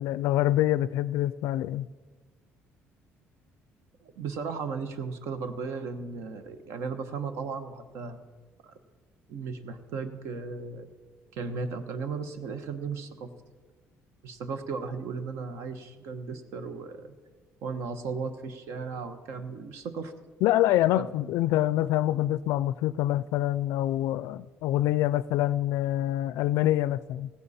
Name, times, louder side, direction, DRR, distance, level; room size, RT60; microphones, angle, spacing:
voice 1, 0.0-1.9 20.4-27.3, left 14 dB, 90° left, 0.3 m, -26 dB
voice 2, 4.0-8.2 8.6-8.8 9.3-10.9 11.3-13.3 14.2-17.2 17.6-20.1, right 5 dB, 70° right, 1.1 m, -36 dB
16.0 x 15.0 x 4.2 m
cardioid pair, 180°, 5 cm